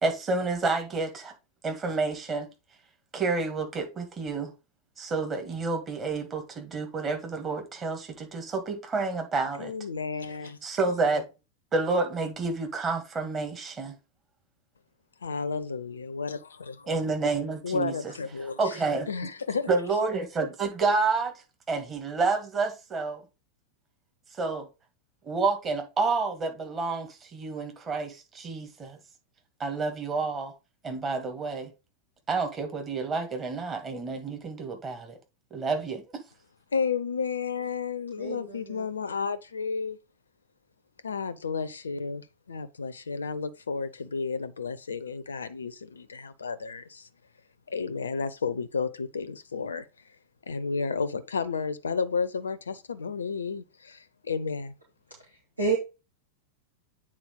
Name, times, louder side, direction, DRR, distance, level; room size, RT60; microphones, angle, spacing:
voice 1, 0.0-1.3 1.6-2.5 3.1-4.5 5.0-9.7 10.6-11.2 11.7-14.0 16.9-17.9 18.6-19.1 19.7-21.3 21.7-23.2 24.4-24.7 25.2-29.0 29.6-30.5 30.8-31.7 32.3-35.2 35.5-36.0, right 4 dB, 25° right, 2.3 m, -29 dB
voice 2, 9.6-10.6 15.2-16.9 17.6-18.8 19.1-19.7 36.7-40.0 41.0-47.1 47.7-49.9 50.5-54.7, left 5 dB, 70° left, 0.6 m, -32 dB
voice 3, 38.2-38.9 55.6-55.8, right 4 dB, 85° right, 2.5 m, -29 dB
8.7 x 4.3 x 3.9 m
figure-of-eight pair, 90°, 0 cm